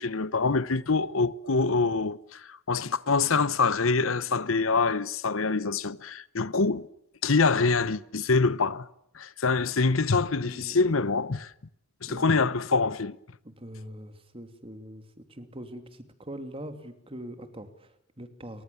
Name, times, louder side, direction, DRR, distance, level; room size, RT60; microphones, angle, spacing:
voice 1, 0.0-6.9 7.2-8.9 9.1-11.5 12.0-13.2, left 4 dB, 85° left, 1.0 m, -25 dB
voice 2, 10.4-10.8 12.0-12.5 13.4-18.6, right 1 dB, 30° right, 2.9 m, -43 dB
29.5 x 24.5 x 7.1 m
head